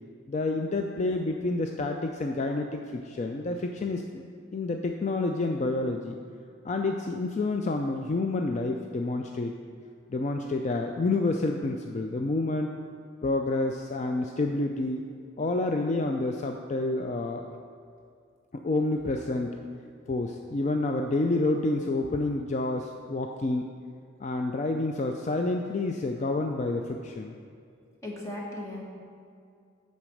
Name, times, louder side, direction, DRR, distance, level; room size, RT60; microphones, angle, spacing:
voice 1, 0.3-4.2 4.5-6.2 6.6-9.5 10.1-12.7 13.2-15.1 15.4-17.4 18.6-19.6 20.1-23.7 24.2-27.3, left 2 dB, 35° left, 3 dB, 0.3 m, -28 dB
voice 2, 28.0-28.8, left 1 dB, 15° left, -3 dB, 1.2 m, -36 dB
9.0 x 4.2 x 6.3 m, 2.3 s
head